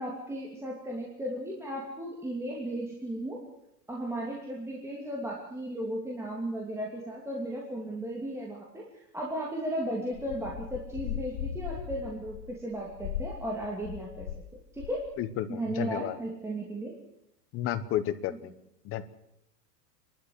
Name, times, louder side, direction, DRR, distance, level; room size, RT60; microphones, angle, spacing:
voice 1, 0.0-3.5 3.9-14.3 14.7-15.1 15.5-16.9, right 1 dB, 5° right, -3 dB, 2.8 m, -35 dB
sound 1, 10.1-14.5 14.8-15.1, left 10 dB, 65° left, 2.1 m, -38 dB
voice 2, 15.2-16.1 17.5-18.5 18.8-19.0, left 11 dB, 25° left, 12 dB, 1.2 m, -32 dB
29.5 x 12.0 x 7.9 m, 0.81 s
supercardioid pair, 150°, 48 cm